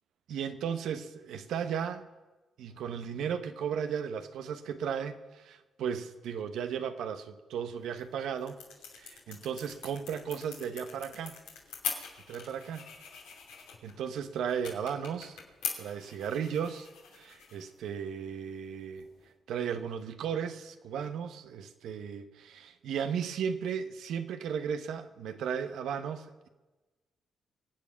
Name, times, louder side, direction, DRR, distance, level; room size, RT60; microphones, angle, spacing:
voice 1, 0.3-2.1 2.6-8.6 8.9-11.4 12.3-12.9 13.8-15.4 15.8-16.9 17.1-19.1 19.5-26.5, right 7 dB, 75° right, 9 dB, 1.1 m, -35 dB
sound 1, 7.8-19.3, left 6 dB, 85° left, 2.8 m, -44 dB
24.5 x 8.6 x 5.8 m, 1.2 s
hypercardioid pair, 50°, 0 cm